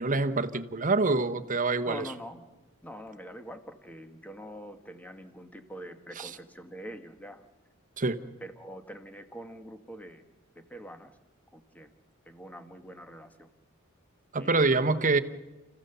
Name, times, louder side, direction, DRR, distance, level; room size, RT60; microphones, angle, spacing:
voice 1, 0.0-2.1 6.2-6.3 8.0-8.2 14.3-15.2, right 3 dB, 40° right, 9 dB, 1.0 m, -26 dB
voice 2, 1.8-2.5 2.8-7.4 8.4-10.2 10.5-11.2 11.5-11.9 12.2-13.5 14.4-14.9, equal, 5° left, 7 dB, 1.4 m, -44 dB
30.0 x 15.5 x 6.9 m, 1.1 s
head